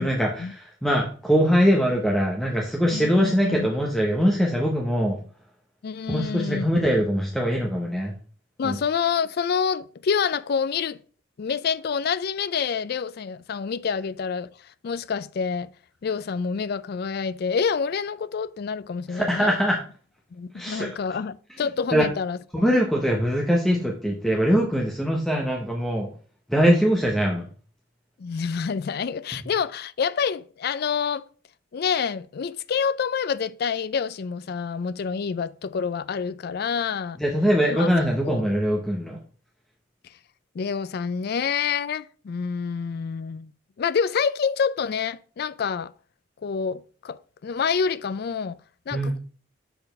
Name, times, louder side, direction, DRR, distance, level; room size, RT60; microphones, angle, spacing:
voice 1, 0.0-5.2 6.1-8.1 8.6-8.8 19.1-19.8 20.5-20.9 21.9-22.0 22.5-26.1 26.5-27.5 37.2-39.2 48.9-49.2, equal, ahead, 0.8 m, -22 dB
voice 2, 2.9-3.7 5.8-6.9 8.6-11.0 11.4-14.5 14.8-15.7 16.0-19.5 20.3-22.6 28.2-31.2 31.7-37.2 37.7-37.9 38.2-38.4 40.5-43.5 43.8-45.9 46.4-48.6 48.9-49.2, left 6 dB, 50° left, 0.4 m, -27 dB
6.9 x 4.0 x 5.3 m
head